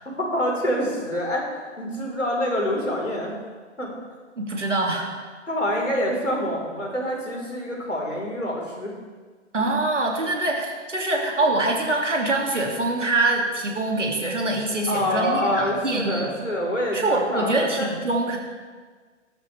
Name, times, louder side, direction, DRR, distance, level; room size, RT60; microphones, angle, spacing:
voice 1, 0.0-1.5 1.8-3.3 3.8-3.9 5.5-9.0 14.9-17.9, equal, 80° left, -2 dB, 4.6 m, -26 dB
voice 2, 4.4-5.1 9.5-16.3 16.9-18.4, right 2 dB, 75° right, 0 dB, 2.8 m, -24 dB
17.5 x 12.5 x 3.5 m, 1.5 s
figure-of-eight pair, 125°, 37 cm